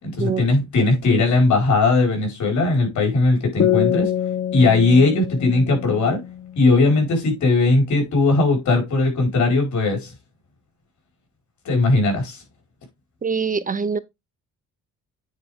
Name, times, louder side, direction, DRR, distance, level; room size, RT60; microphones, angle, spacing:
voice 1, 0.0-4.1 4.5-6.2 6.6-10.1 11.6-12.4, left 3 dB, 70° left, 5.0 m, -18 dB
sound 1, 3.6-7.1, left 11 dB, 45° left, 1.1 m, -25 dB
voice 2, 13.2-14.0, right 5 dB, 30° right, 0.5 m, -24 dB
9.3 x 4.9 x 3.6 m
cardioid pair, 90°, 30 cm